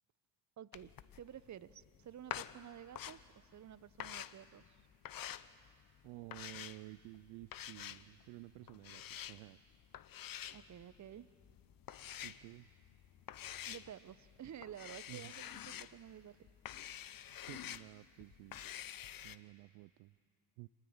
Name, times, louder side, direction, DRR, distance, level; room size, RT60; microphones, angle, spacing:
voice 1, 0.6-4.8 10.5-11.3 13.7-16.4, right 10 dB, 40° right, 17 dB, 1.0 m, -52 dB
sound 1, 0.7-19.4, left 11 dB, 50° left, 1.1 m, -48 dB
voice 2, 6.0-9.0 9.3-9.6 12.2-12.7 15.1-15.3 17.5-18.6 19.2-20.1 20.6-20.7, right 21 dB, 75° right, 16 dB, 0.6 m, -52 dB
26.0 x 21.0 x 8.8 m, 2.2 s
hypercardioid pair, 65°, 45 cm